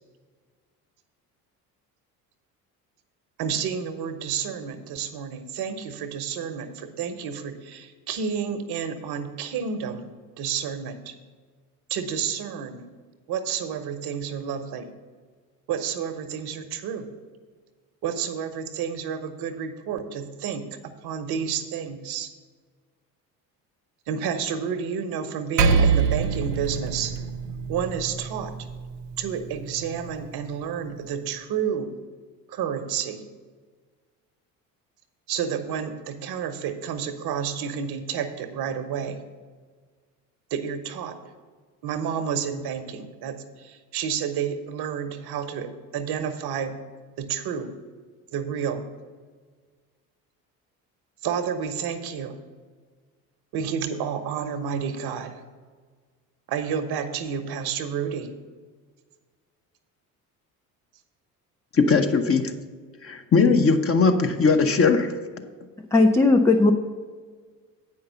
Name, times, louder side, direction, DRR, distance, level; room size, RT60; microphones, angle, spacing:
voice 1, 3.4-10.1 10.4-11.1 11.9-12.9 13.3-14.9 15.7-17.1 18.0-22.3 24.1-27.1 27.7-28.5 29.2-31.9 32.5-33.2 35.3-39.2 40.5-41.2 41.8-46.7 47.2-47.7 48.3-48.8 51.2-52.4 53.5-55.4 56.5-58.3, right 7 dB, 50° right, 8 dB, 1.1 m, -30 dB
Percussion, 25.6-30.4, right 5 dB, 85° right, 0.7 m, -25 dB
voice 2, 61.7-62.5 63.0-65.1, left 4 dB, 30° left, 6 dB, 0.9 m, -19 dB
voice 3, 65.9-66.7, left 2 dB, 5° left, 4 dB, 0.3 m, -17 dB
8.5 x 5.5 x 6.8 m, 1.5 s
hypercardioid pair, 60°, 48 cm